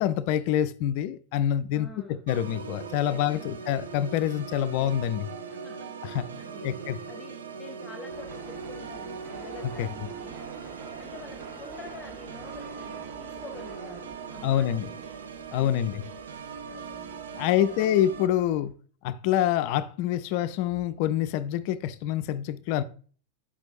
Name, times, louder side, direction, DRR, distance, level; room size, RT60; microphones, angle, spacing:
voice 1, 0.0-5.3 6.0-6.3 6.6-7.0 9.8-9.9 14.4-14.9 15.5-16.0 17.4-18.7 19.0-22.8, left 11 dB, 45° left, 0.4 m, -26 dB
voice 2, 1.7-2.2 3.1-3.6 5.5-5.9 6.4-10.4 10.9-15.0 15.5-16.1 16.7-18.0, left 3 dB, 20° left, 0.9 m, -47 dB
Organ, 2.3-18.3, right 6 dB, 65° right, 0.6 m, -40 dB
sound 1, 8.1-18.7, right 4 dB, 35° right, 1.7 m, -48 dB
8.3 x 6.0 x 2.5 m
figure-of-eight pair, 90°, 0 cm